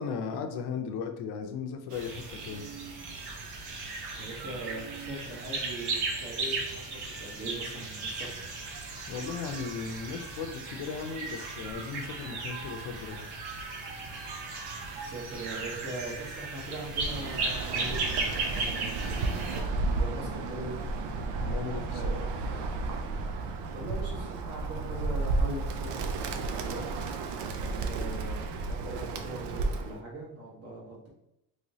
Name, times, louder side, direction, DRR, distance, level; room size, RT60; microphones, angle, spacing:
voice 1, 0.0-2.6 9.1-13.2 21.4-22.0, left 6 dB, 75° left, 5 dB, 0.6 m, -36 dB
sound 1, 1.9-19.6, right 3 dB, 65° right, 0.9 m, -36 dB
voice 2, 4.1-8.5 14.9-19.4 20.0-20.8 21.8-22.3 23.7-26.9 27.8-31.1, right 1 dB, 35° right, -4 dB, 1.1 m, -41 dB
Bird, 16.9-30.0, right 3 dB, 90° right, 0.5 m, -32 dB
3.1 x 3.0 x 2.7 m, 0.86 s
cardioid pair, 175°, 41 cm